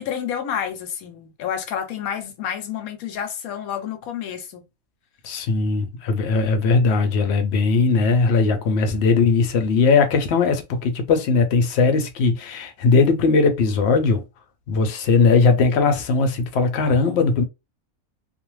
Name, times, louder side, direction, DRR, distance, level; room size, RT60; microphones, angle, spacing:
voice 1, 0.0-4.7, left 8 dB, 85° left, 1.1 m, -29 dB
voice 2, 5.2-14.2 14.7-17.4, left 4 dB, 60° left, 0.7 m, -19 dB
2.5 x 2.1 x 3.0 m
omnidirectional pair, 1.5 m